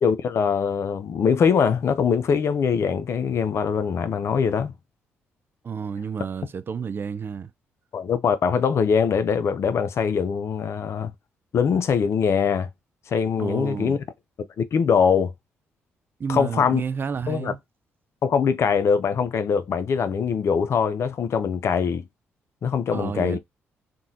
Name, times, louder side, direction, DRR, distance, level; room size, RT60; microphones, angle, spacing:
voice 1, 0.0-4.7 7.9-11.1 11.5-12.7 13.1-14.0 14.6-15.3 16.3-16.8 17.3-17.5 18.2-22.0 22.6-23.4, left 6 dB, 55° left, 0.5 m, -22 dB
voice 2, 5.6-7.5 13.4-14.0 16.2-17.6 22.9-23.4, right 6 dB, 45° right, 0.4 m, -30 dB
3.7 x 2.3 x 2.6 m
supercardioid pair, 55°, 5 cm